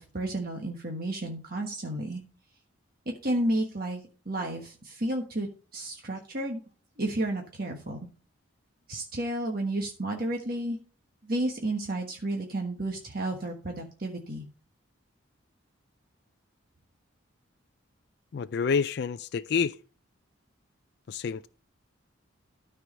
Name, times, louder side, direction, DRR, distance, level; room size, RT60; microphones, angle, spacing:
voice 1, 0.0-2.2 3.0-5.5 5.7-6.6 7.0-8.0 8.9-10.8 11.2-14.4, right 1 dB, 45° right, 1.4 m, -32 dB
voice 2, 18.3-19.8 21.1-21.5, left 6 dB, 55° left, 0.3 m, -28 dB
13.0 x 4.8 x 5.3 m
head